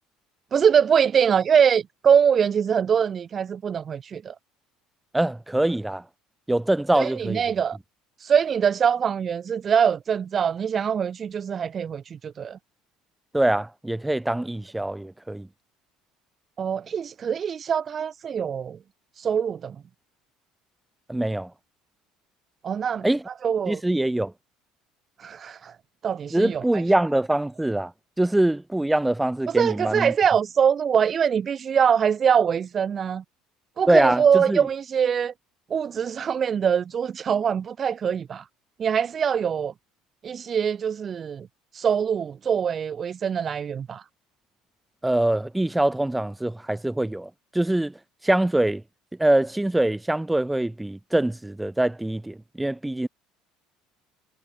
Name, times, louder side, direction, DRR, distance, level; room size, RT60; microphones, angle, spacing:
voice 1, 0.5-4.3 6.9-7.8 8.2-12.6 16.6-18.8 19.2-19.8 22.6-23.8 25.2-25.7 26.0-26.6 29.5-33.2 33.8-35.3 35.7-38.4 38.8-39.7 40.2-41.5 41.7-44.0, right 7 dB, 35° right, 1.8 m, -23 dB
voice 2, 5.1-6.0 6.5-7.4 13.3-15.5 21.1-21.5 23.0-23.2 23.7-24.3 26.3-27.9 28.2-30.1 33.9-34.7 45.0-47.9 48.2-48.8 49.2-53.1, right 1 dB, 5° right, 5.9 m, -23 dB
figure-of-eight pair, 60°, 0 cm